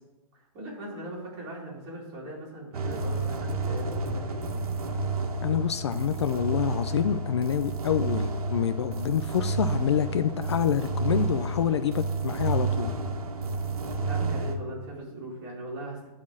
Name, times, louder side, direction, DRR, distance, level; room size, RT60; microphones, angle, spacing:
voice 1, 0.5-4.6 14.0-16.1, right 1 dB, 25° right, -4 dB, 2.9 m, -39 dB
sound 1, 2.7-14.6, right 3 dB, 80° right, 1.5 m, -30 dB
voice 2, 5.4-12.9, left 9 dB, 50° left, 11 dB, 0.4 m, -27 dB
9.6 x 4.2 x 7.5 m, 1.1 s
hypercardioid pair, 175°, 19 cm